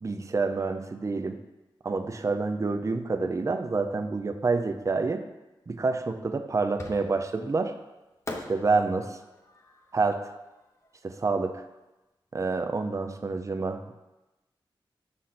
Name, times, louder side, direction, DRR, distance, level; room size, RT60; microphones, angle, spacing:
voice 1, 0.0-1.4 1.8-5.3 5.7-7.7 8.3-9.2 9.9-10.2 11.0-11.6 12.3-14.0, right 3 dB, 35° right, 7 dB, 0.5 m, -28 dB
Fireworks, 6.8-7.4 8.3-11.4, left 1 dB, 30° left, 0.8 m, -43 dB
6.3 x 4.1 x 5.8 m, 1.0 s
wide cardioid pair, 105°, 9 cm